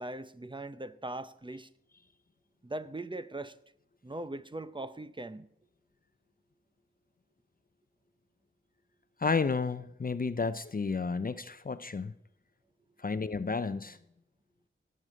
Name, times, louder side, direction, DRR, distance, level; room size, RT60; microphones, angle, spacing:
voice 1, 0.0-1.7 2.6-3.6 4.0-5.5, right 2 dB, 25° right, 0.7 m, -40 dB
voice 2, 9.2-12.1 13.0-14.0, left 4 dB, 45° left, 0.5 m, -31 dB
17.5 x 6.6 x 7.6 m
wide cardioid pair, 60°, 21 cm